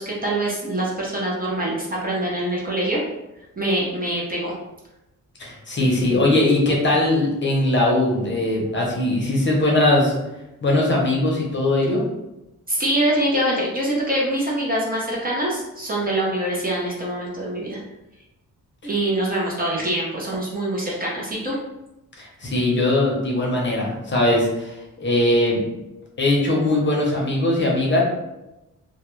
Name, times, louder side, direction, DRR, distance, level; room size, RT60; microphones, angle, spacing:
voice 1, 0.0-3.0 3.6-4.5 12.7-17.8 18.8-21.6, right 1 dB, 30° right, -4 dB, 0.5 m, -24 dB
voice 2, 5.4-10.1 10.6-12.0 22.2-25.6 26.2-28.0, left 1 dB, 35° left, -3 dB, 0.6 m, -20 dB
2.2 x 2.0 x 2.9 m, 0.95 s
wide cardioid pair, 150°, 32 cm